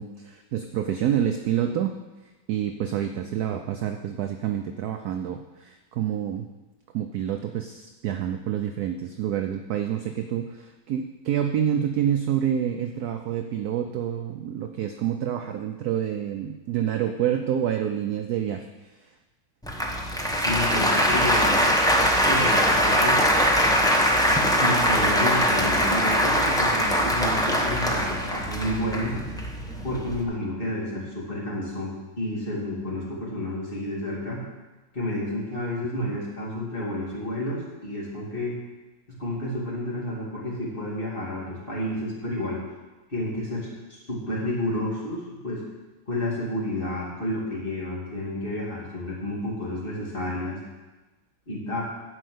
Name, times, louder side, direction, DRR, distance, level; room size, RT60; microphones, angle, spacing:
voice 1, 0.0-1.9 2.5-6.5 6.9-19.1 36.0-36.1, right 10 dB, 70° right, 6 dB, 0.9 m, -28 dB
Applause, 19.6-30.2, equal, 5° left, 0.5 m, -22 dB
voice 2, 20.4-21.7 22.3-23.2 24.6-29.2 29.8-34.4 34.9-38.6 39.1-42.6 43.1-45.6 46.1-50.6 51.5-51.8, left 1 dB, 25° left, -5 dB, 2.9 m, -30 dB
11.0 x 5.3 x 7.8 m, 1.2 s
omnidirectional pair, 2.2 m